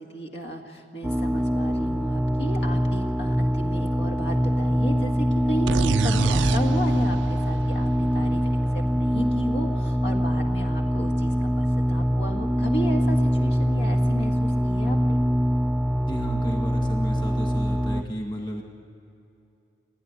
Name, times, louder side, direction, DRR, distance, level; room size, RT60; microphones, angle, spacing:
voice 1, 0.0-15.2, equal, 70° left, 2 dB, 1.9 m, -34 dB
sound 1, 1.0-18.0, equal, ahead, 0.4 m, -23 dB
sound 2, 5.7-9.4, right 5 dB, 90° right, 0.4 m, -29 dB
voice 2, 16.1-18.6, equal, 25° left, 2 dB, 2.0 m, -32 dB
29.5 x 9.9 x 9.9 m, 2.6 s
head